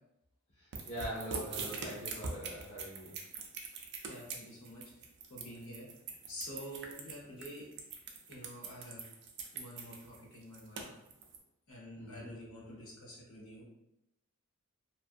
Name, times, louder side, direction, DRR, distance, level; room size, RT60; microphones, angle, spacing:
voice 1, 0.6-3.2 12.0-12.3, right 1 dB, 30° left, -7 dB, 0.5 m, -43 dB
sound 1, 0.7-11.4, right 4 dB, 55° right, 0.4 m, -42 dB
voice 2, 3.7-4.9 5.3-5.9 6.3-7.7 8.3-9.0 9.5-10.9 11.7-13.6, equal, 65° left, -5 dB, 1.0 m, -48 dB
2.5 x 2.3 x 2.4 m, 0.87 s
head